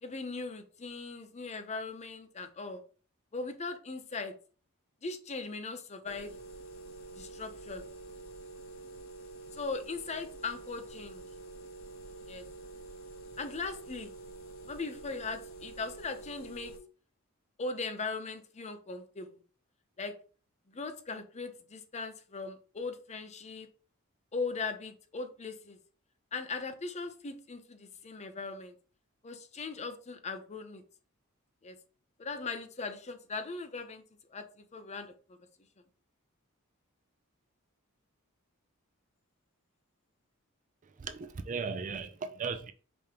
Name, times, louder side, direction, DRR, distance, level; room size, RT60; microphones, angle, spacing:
voice 1, 0.0-2.8 3.3-4.3 5.0-6.3 7.2-7.8 9.5-11.2 12.3-12.4 13.4-14.1 14.7-16.7 17.6-19.3 20.0-20.2 20.7-23.7 24.3-25.8 26.3-28.7 29.2-30.8 31.6-31.8 32.2-34.0 34.3-35.4, left 4 dB, 30° left, 0.6 m, -39 dB
sound 1, 6.1-16.8, right 3 dB, 70° left, 0.8 m, -47 dB
voice 2, 41.0-42.7, right 5 dB, 35° right, 0.4 m, -36 dB
5.1 x 3.6 x 2.9 m
head